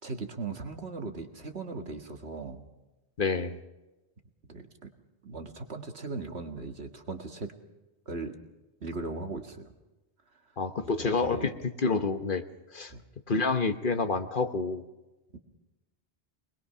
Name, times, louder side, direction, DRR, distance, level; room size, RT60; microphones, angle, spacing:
voice 1, 0.0-2.7 4.5-4.9 5.2-7.5 8.1-8.3 8.8-9.7 11.2-11.5 12.9-13.0 15.3-15.4, right 3 dB, 70° right, 5 dB, 2.0 m, -38 dB
voice 2, 3.2-3.6 10.6-11.5 11.8-12.4 12.7-12.9 13.3-14.8, left 4 dB, 50° left, 8 dB, 1.3 m, -28 dB
24.5 x 20.5 x 5.6 m, 1.1 s
omnidirectional pair, 1.1 m